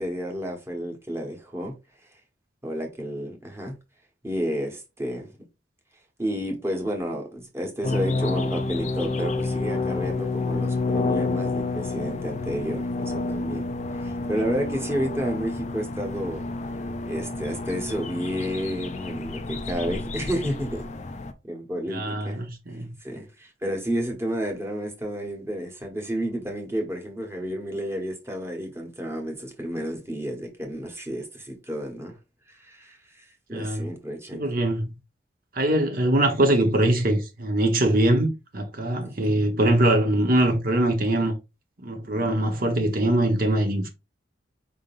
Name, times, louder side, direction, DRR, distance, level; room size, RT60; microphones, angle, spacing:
voice 1, 0.0-1.7 2.6-3.8 4.2-5.3 6.2-13.7 13.9-16.4 17.0-20.9 21.4-22.4 23.0-32.2 32.5-34.5 39.0-39.3, equal, 15° right, 1.2 m, -31 dB
sound 1, 7.8-21.3, left 3 dB, 40° left, 0.5 m, -29 dB
voice 2, 21.9-22.9 33.5-33.9 34.3-34.9 35.5-41.3 41.8-43.9, right 1 dB, 50° right, 1.1 m, -22 dB
5.1 x 3.7 x 2.5 m
head